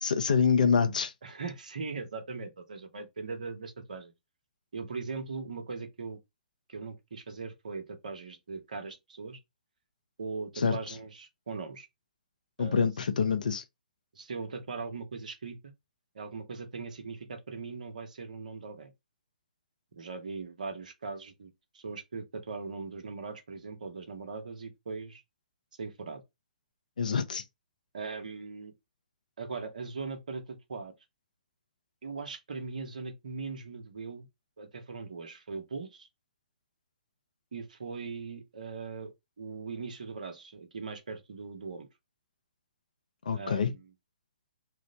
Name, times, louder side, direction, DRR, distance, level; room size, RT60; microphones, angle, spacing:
voice 1, 0.0-1.1 10.6-10.8 12.6-13.6 27.0-27.4 43.3-43.7, left 6 dB, 70° left, 0.6 m, -26 dB
voice 2, 1.2-4.1 4.7-6.2 6.7-9.4 10.2-11.9 12.6-12.9 14.1-15.7 16.1-18.9 19.9-25.2 25.8-26.2 27.9-28.7 29.4-30.9 32.0-34.3 34.6-36.1 37.5-41.9 43.3-43.9, right 4 dB, 65° right, 0.9 m, -40 dB
3.0 x 2.0 x 3.8 m
figure-of-eight pair, 130°, 5 cm